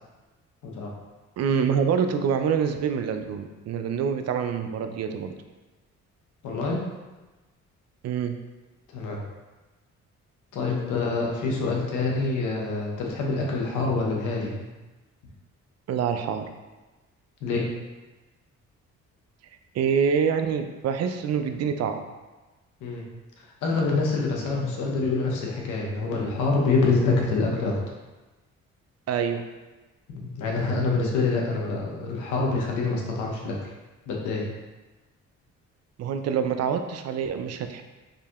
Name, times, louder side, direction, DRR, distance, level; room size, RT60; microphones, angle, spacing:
voice 1, 1.4-5.3 8.0-8.4 15.9-16.5 19.7-22.0 29.1-29.4 36.0-37.8, right 7 dB, 60° right, 7 dB, 0.4 m, -26 dB
voice 2, 6.4-6.9 8.9-9.2 10.5-14.7 17.4-17.7 22.8-23.0 23.6-27.8 30.1-33.7 34.1-34.5, left 3 dB, 85° left, -2 dB, 0.9 m, -26 dB
5.0 x 2.7 x 2.4 m, 1.2 s
cardioid pair, 90°, 30 cm